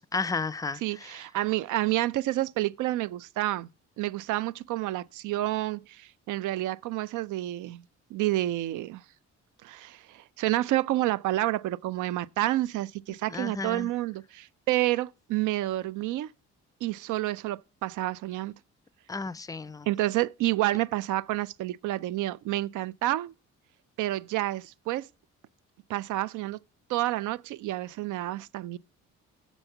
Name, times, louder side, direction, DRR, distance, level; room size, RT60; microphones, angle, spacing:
voice 1, 0.0-1.1 13.3-13.9 19.1-19.9, left 4 dB, 10° left, 0.4 m, -33 dB
voice 2, 0.8-3.7 4.0-7.8 8.1-9.0 9.6-16.3 16.8-18.5 19.9-23.3 24.0-25.1 25.9-26.6 26.9-28.8, right 16 dB, 80° right, 0.5 m, -29 dB
7.1 x 5.4 x 5.6 m
cardioid pair, 90°, 30 cm